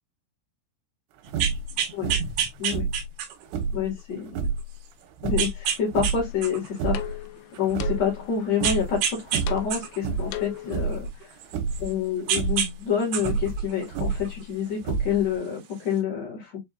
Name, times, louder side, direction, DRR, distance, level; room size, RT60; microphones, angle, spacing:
sound 1, 1.2-3.5 4.1-4.2 5.4-6.2 6.4-7.7 8.6-9.4 9.7-11.9 12.3-12.7 13.0-14.4 15.4-15.5, right 9 dB, 70° right, 2.5 m, -28 dB
sound 2, 1.3-1.7 2.0-2.4 2.7-3.9 4.3-4.6 5.2-6.3 6.7-7.2 7.6-8.3 8.6-9.0 9.3-9.7 10.0-10.4 10.7-11.1 11.5-11.9 12.3-12.6 13.2-14.3 14.8-15.4, right 5 dB, 90° right, 3.2 m, -28 dB
voice 1, 3.7-4.5 5.2-7.2 7.6-11.4 11.8-16.6, left 7 dB, 60° left, 1.9 m, -28 dB
sound 3, 6.3-10.9, left 14 dB, 90° left, 3.0 m, -40 dB
7.2 x 2.5 x 2.3 m
omnidirectional pair, 5.4 m